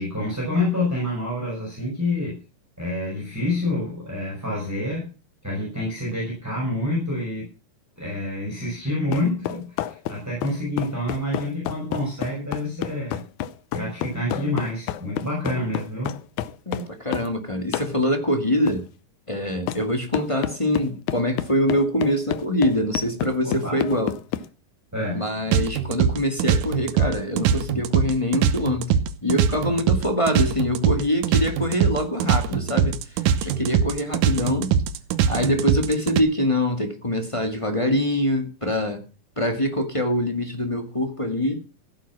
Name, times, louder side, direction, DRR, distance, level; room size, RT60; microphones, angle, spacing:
voice 1, 0.0-2.4 2.8-5.1 5.4-7.5 8.0-13.2 13.7-16.2 23.4-23.8 24.9-25.3, left 1 dB, 5° right, 5.9 m, -27 dB
sound 1, 9.1-17.3 17.7-17.9 18.7-18.8 19.7-19.8 20.1-24.5, left 12 dB, 75° left, 2.0 m, -29 dB
voice 2, 16.6-18.9 19.3-24.1 25.1-28.9 29.2-34.7 35.3-39.0 39.4-41.6, left 1 dB, 15° left, 1.2 m, -24 dB
sound 2, 25.5-36.2, right 8 dB, 75° right, 2.4 m, -22 dB
16.0 x 9.0 x 6.1 m
omnidirectional pair, 3.9 m